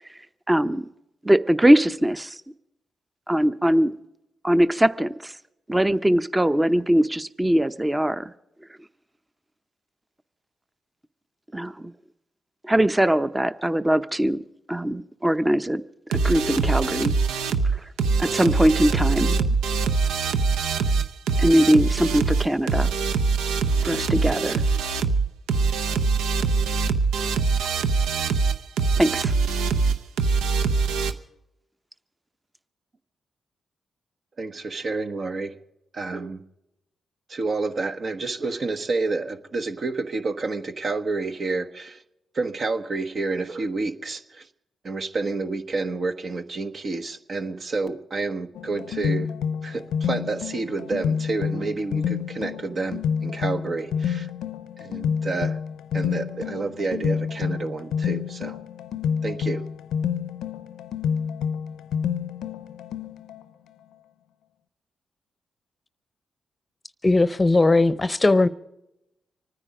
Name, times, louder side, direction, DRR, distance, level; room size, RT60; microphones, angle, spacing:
voice 1, 0.5-0.9 1.2-2.4 3.3-3.9 4.4-5.3 5.7-8.3 11.5-11.9 12.6-14.4 14.7-15.8 16.2-17.1 18.2-19.5 21.4-22.9 23.8-24.6 29.0-29.3, right 1 dB, 15° right, 0.8 m, -21 dB
sound 1, 16.1-31.1, right 4 dB, 85° right, 0.7 m, -23 dB
voice 2, 34.4-35.6 35.9-36.4 37.3-42.0 42.3-44.5 44.8-49.3 49.6-54.3 54.8-55.6 55.9-58.6 59.2-59.6, right 3 dB, 55° right, 1.2 m, -29 dB
sound 2, 48.6-63.4, left 7 dB, 85° left, 0.6 m, -28 dB
voice 3, 67.0-68.5, left 2 dB, 30° left, 0.7 m, -18 dB
25.5 x 9.8 x 5.1 m
supercardioid pair, 45°, 0 cm